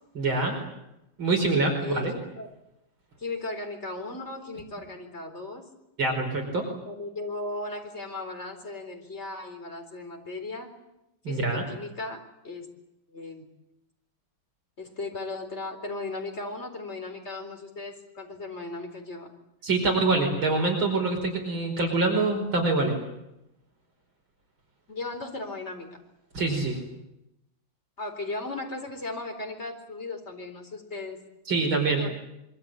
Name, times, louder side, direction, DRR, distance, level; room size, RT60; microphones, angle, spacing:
voice 1, 0.2-0.6 1.2-2.1 6.0-6.6 11.2-11.6 19.6-22.9 26.3-26.8 31.5-32.0, right 3 dB, 80° right, 2 dB, 5.8 m, -25 dB
voice 2, 1.8-2.5 3.2-5.6 6.8-10.7 11.3-12.7 13.1-13.5 14.8-19.3 24.9-25.9 28.0-31.2 31.9-32.1, left 2 dB, 30° left, 3 dB, 4.4 m, -36 dB
25.0 x 23.5 x 8.9 m, 0.87 s
omnidirectional pair, 2.2 m